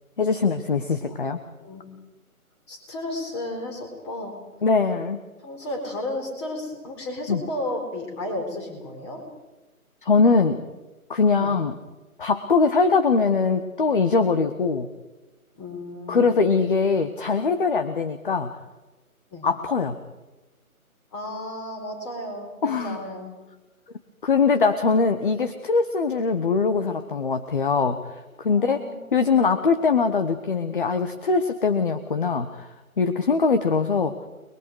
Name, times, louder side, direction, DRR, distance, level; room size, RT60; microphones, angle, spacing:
voice 1, 0.2-1.4 4.6-5.2 7.3-7.4 10.0-10.7 11.1-11.7 12.2-14.9 16.1-18.6 19.4-20.0 22.6-23.0 24.2-28.8 29.1-32.7 33.0-34.1, left 4 dB, 35° left, 9 dB, 1.1 m, -22 dB
voice 2, 2.7-4.3 5.4-9.2 11.3-11.6 15.6-16.3 19.3-19.5 21.1-23.3 28.5-29.2, left 1 dB, 20° left, 3 dB, 4.4 m, -33 dB
29.5 x 22.0 x 4.8 m, 1.1 s
figure-of-eight pair, 150°, 44 cm